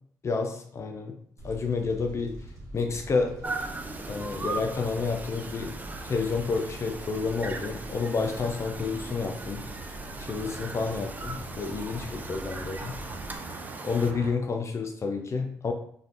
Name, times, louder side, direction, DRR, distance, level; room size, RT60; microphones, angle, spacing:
voice 1, 0.2-1.2 1.4-2.4 2.7-3.5 4.1-5.7 6.0-9.7 10.2-13.0 13.8-15.7, left 4 dB, 40° left, 5 dB, 0.4 m, -30 dB
Fire, 1.4-13.4, right 1 dB, 50° right, 1.1 m, -44 dB
sound 1, 3.4-14.1, right 3 dB, 20° right, 0.4 m, -39 dB
sound 2, 5.8-14.3, right 3 dB, 85° right, 0.5 m, -45 dB
3.1 x 2.4 x 2.8 m, 0.65 s
supercardioid pair, 65°, 7 cm